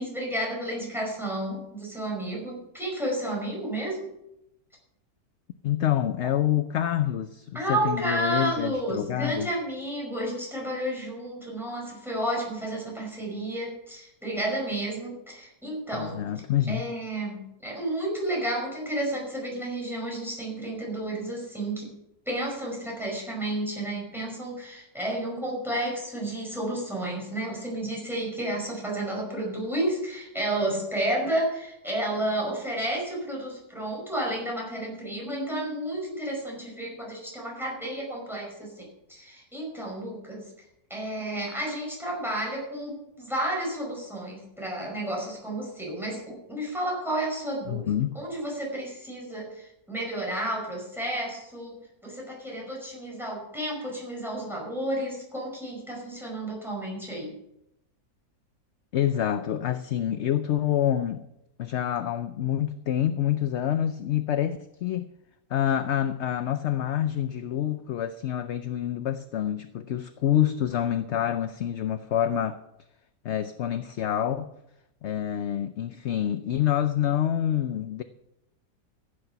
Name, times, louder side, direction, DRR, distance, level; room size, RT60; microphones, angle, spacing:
voice 1, 0.0-4.1 7.5-16.2 16.7-21.9 22.2-40.5 40.9-47.9 48.1-57.3, right 1 dB, ahead, -2 dB, 5.1 m, -31 dB
voice 2, 5.6-9.5 15.9-16.8 47.7-48.2 58.9-61.2 61.6-65.1 65.5-72.6 73.2-74.5 75.0-78.0, left 11 dB, 60° left, 10 dB, 0.7 m, -27 dB
15.0 x 8.8 x 5.7 m, 0.83 s
omnidirectional pair, 1.6 m